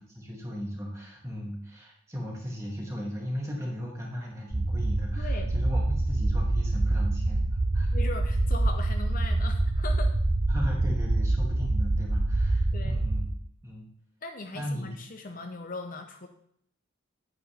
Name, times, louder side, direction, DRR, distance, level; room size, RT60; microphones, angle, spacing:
voice 1, 0.1-7.9 10.5-13.3 13.6-13.9 14.5-14.9, equal, 15° right, -2 dB, 2.2 m, -36 dB
sound 1, 4.5-13.3, right 2 dB, 30° right, 0.7 m, -26 dB
voice 2, 5.1-5.5 7.9-10.2 12.7-13.0 14.2-16.3, left 3 dB, 40° left, 6 dB, 0.6 m, -39 dB
9.5 x 8.8 x 3.4 m, 0.69 s
head